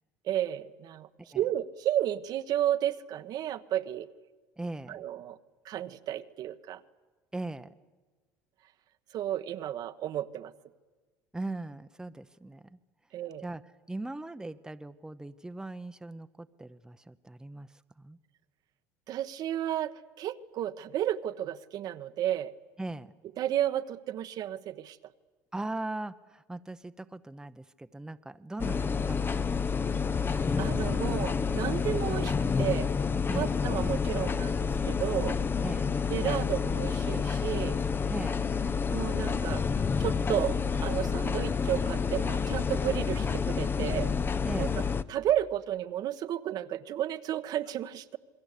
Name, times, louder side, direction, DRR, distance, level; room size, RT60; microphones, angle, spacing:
voice 1, 0.2-1.1 1.3-4.1 4.9-5.4 5.6-6.8 9.1-10.5 13.1-13.5 19.1-22.5 23.4-25.0 30.6-32.9 33.3-35.4 36.1-37.8 38.9-39.6 40.0-44.1 44.6-44.8 45.1-48.2, right 11 dB, 60° right, 10 dB, 1.2 m, -32 dB
voice 2, 4.6-5.0 7.3-7.7 11.3-12.8 13.4-13.6 13.9-18.2 22.8-23.1 25.5-30.0 33.3-33.6 35.6-35.9 38.1-38.4 44.4-44.7, right 2 dB, 10° right, 10 dB, 0.9 m, -39 dB
sound 1, 28.6-45.0, left 5 dB, 30° left, 0.9 m, -29 dB
28.0 x 21.5 x 8.4 m, 1.3 s
supercardioid pair, 85°, 8 cm